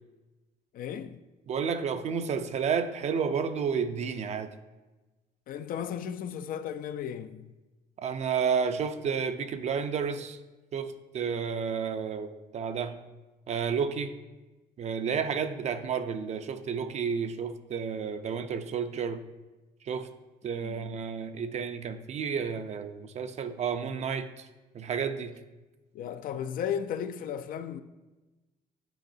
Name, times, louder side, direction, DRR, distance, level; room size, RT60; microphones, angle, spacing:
voice 1, 0.7-1.2 5.5-7.5 20.6-20.9 25.9-27.8, left 8 dB, 55° left, 0.4 m, -35 dB
voice 2, 1.5-4.5 8.0-10.4 10.7-13.0 13.5-14.1 14.8-19.2 19.9-20.1 20.4-24.5 24.7-25.3, right 6 dB, 40° right, 0.5 m, -31 dB
9.1 x 4.7 x 2.6 m
cardioid pair, 110°, 17 cm